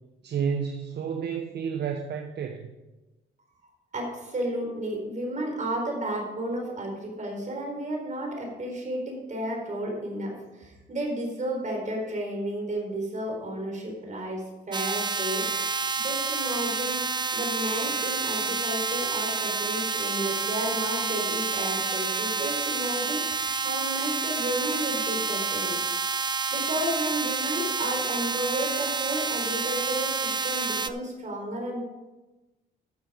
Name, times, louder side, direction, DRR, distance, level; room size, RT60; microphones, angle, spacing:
voice 1, 0.2-2.7, right 7 dB, 60° right, 7 dB, 0.9 m, -30 dB
voice 2, 3.9-15.7 16.0-17.0 17.3-26.0 26.5-31.8, right 1 dB, 40° right, 0 dB, 4.4 m, -32 dB
sound 1, 14.7-30.9, right 4 dB, 20° right, 0.5 m, -29 dB
13.0 x 7.0 x 5.0 m, 1.1 s
cardioid pair, 90°, 20 cm